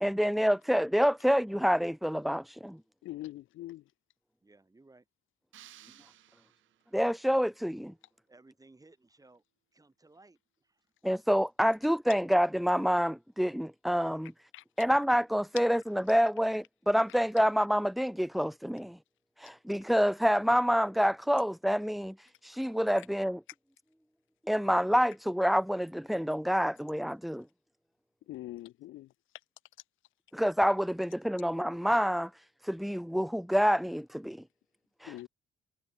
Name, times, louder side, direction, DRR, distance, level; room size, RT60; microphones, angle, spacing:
voice 1, 0.0-2.8 6.9-7.9 11.0-14.3 14.8-19.0 19.4-23.4 24.5-27.4 30.3-34.4 35.0-35.3, equal, ahead, 0.5 m, -27 dB
voice 2, 3.0-3.8 14.5-14.6 28.3-29.1 35.1-35.3, left 15 dB, 85° left, 1.2 m, -42 dB
voice 3, 4.4-5.0 8.3-9.4 9.7-10.9, right 2 dB, 15° right, 4.7 m, -59 dB
sound 1, 5.5-7.1, right 13 dB, 75° right, 1.6 m, -56 dB
cardioid pair, 90°, 20 cm